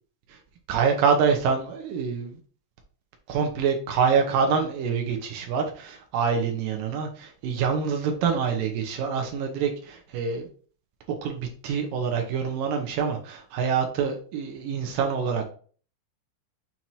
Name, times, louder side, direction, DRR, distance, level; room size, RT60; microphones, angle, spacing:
voice 1, 0.7-2.4 3.3-10.5 11.2-15.5, right 6 dB, 80° right, 3 dB, 2.0 m, -26 dB
7.4 x 4.5 x 2.8 m, 0.43 s
omnidirectional pair, 5.1 m